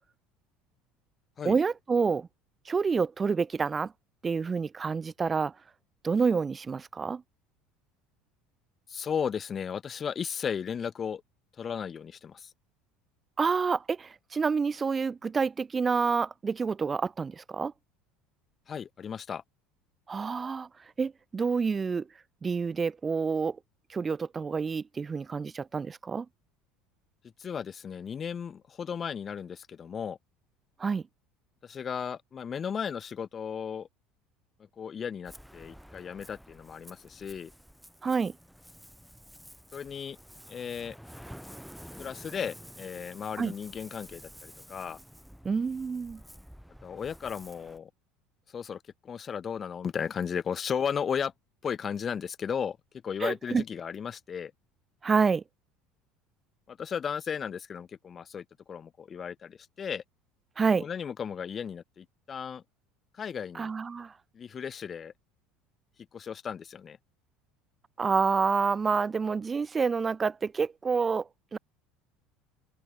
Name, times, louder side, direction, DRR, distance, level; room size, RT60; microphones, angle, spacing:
voice 1, 1.4-2.3 2.7-3.9 4.2-5.5 6.0-7.2 13.4-17.7 20.1-20.7 21.0-22.1 22.4-23.6 23.9-26.3 30.8-31.0 38.0-38.3 43.4-43.5 45.4-46.2 53.2-53.6 55.0-55.4 60.6-60.9 63.5-64.1 68.0-71.6, right 5 dB, 20° right, 0.9 m, -28 dB
voice 2, 8.9-11.2 11.6-12.5 18.7-19.4 27.4-30.2 31.6-33.9 34.8-37.5 39.7-40.2 40.5-41.0 42.0-45.0 46.8-47.9 48.5-51.3 51.6-52.8 53.0-54.5 56.7-60.0 60.8-62.6 63.1-63.7 64.3-65.1 66.1-67.0, left 7 dB, 25° left, 1.1 m, -35 dB
Ocean, 35.2-47.8, equal, ahead, 3.5 m, -50 dB
open air
cardioid pair, 140°, 0 cm